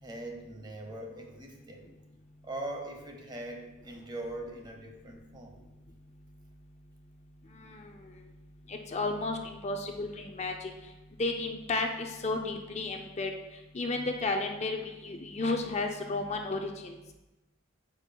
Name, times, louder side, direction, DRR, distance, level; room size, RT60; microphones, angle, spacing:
voice 1, 0.0-1.8 2.4-5.6, right 1 dB, 20° right, 2 dB, 0.9 m, -41 dB
voice 2, 7.5-8.1 8.7-10.7 11.2-13.3 13.7-17.0, left 3 dB, 30° left, 3 dB, 0.4 m, -33 dB
13.0 x 5.3 x 2.3 m, 1.1 s
head